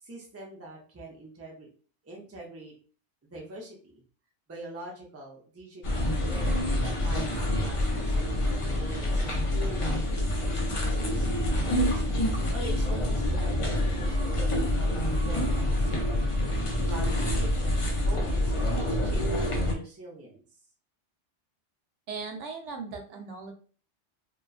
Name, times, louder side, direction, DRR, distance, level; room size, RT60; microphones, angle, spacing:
voice 1, 0.0-1.7 2.0-2.7 3.3-4.0 4.5-12.0 12.5-16.4 16.8-20.4, right 1 dB, 20° right, -1 dB, 0.5 m, -44 dB
sound 1, 5.8-19.8, left 1 dB, 50° left, 0.4 m, -27 dB
voice 2, 22.1-23.5, right 4 dB, 90° right, 3 dB, 1.0 m, -38 dB
2.8 x 2.3 x 2.3 m, 0.40 s
omnidirectional pair, 1.2 m